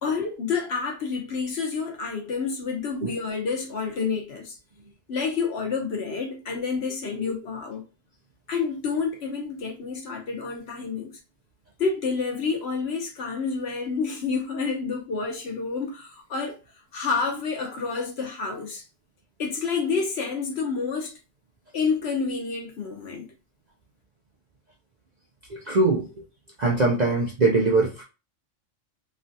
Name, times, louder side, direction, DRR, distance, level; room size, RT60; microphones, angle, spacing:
voice 1, 0.0-4.6 5.1-7.8 8.5-11.1 11.8-16.6 16.9-18.8 19.4-21.2 21.7-23.3, left 5 dB, 60° left, 1.0 m, -29 dB
voice 2, 25.5-26.1 26.6-28.0, right 3 dB, 50° right, 0.5 m, -22 dB
3.2 x 2.3 x 2.6 m
omnidirectional pair, 1.3 m